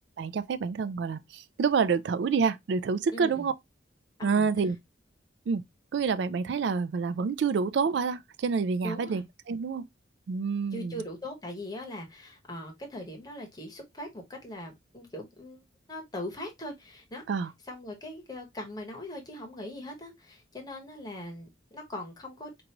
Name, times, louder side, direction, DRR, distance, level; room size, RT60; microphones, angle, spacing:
voice 1, 0.2-3.5 4.2-4.8 5.5-5.6 5.9-9.8 10.3-11.0 17.3-17.5, right 5 dB, 65° right, 0.3 m, -28 dB
voice 2, 3.1-3.5 4.2-4.5 8.8-9.2 10.7-15.6 15.9-17.2 17.7-22.6, left 1 dB, 20° left, 1.1 m, -40 dB
4.6 x 2.6 x 2.9 m
head